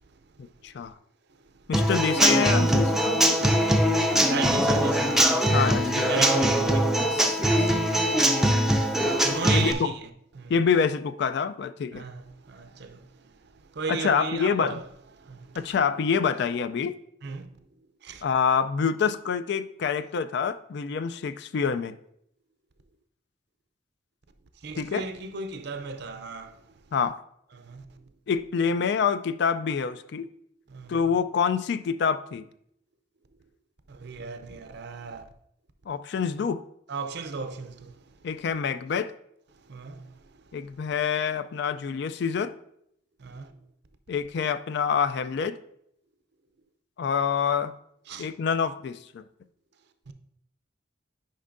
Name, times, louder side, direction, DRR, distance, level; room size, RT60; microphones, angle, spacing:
voice 1, 0.6-0.9 1.7-3.2 5.5-6.3 7.1-8.2 9.5-9.9 10.5-12.0 13.9-14.8 15.5-16.9 18.2-22.0 24.8-25.1 26.9-27.2 28.3-30.3 30.9-32.5 35.9-36.6 38.2-39.1 40.5-42.6 44.1-45.6 47.0-47.7 48.2-49.2, left 6 dB, 60° left, 0.3 m, -27 dB
Human voice / Acoustic guitar / Drum, 1.7-9.7, right 1 dB, ahead, 0.5 m, -22 dB
voice 2, 4.3-5.2 6.1-6.9 9.2-10.0 10.4-10.5 11.9-14.8 15.2-15.6 17.2-17.5 18.0-18.2 24.6-26.6 27.5-27.9 30.7-30.9 33.9-35.2 36.9-38.0 39.7-40.2 43.2-43.5 48.1-48.3 50.1-50.2, right 4 dB, 55° right, 0.5 m, -35 dB
10.0 x 5.3 x 2.6 m
head